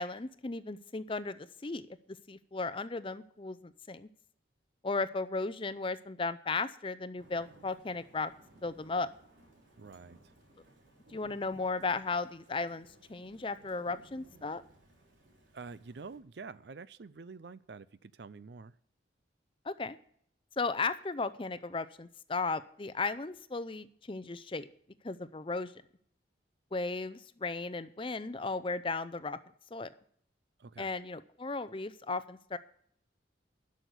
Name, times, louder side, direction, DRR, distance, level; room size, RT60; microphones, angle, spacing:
voice 1, 0.0-1.9 2.3-4.1 4.8-8.3 8.6-9.1 11.1-14.6 19.6-20.0 20.6-24.7 25.0-25.7 26.7-29.4 29.7-29.9 30.8-32.6, left 3 dB, 30° left, 0.5 m, -35 dB
Thunder / Rain, 7.2-16.2, right 2 dB, 75° right, 3.6 m, -61 dB
voice 2, 9.8-10.3 15.5-18.7 30.6-30.9, right 4 dB, 60° right, 0.5 m, -47 dB
12.0 x 6.4 x 8.2 m
head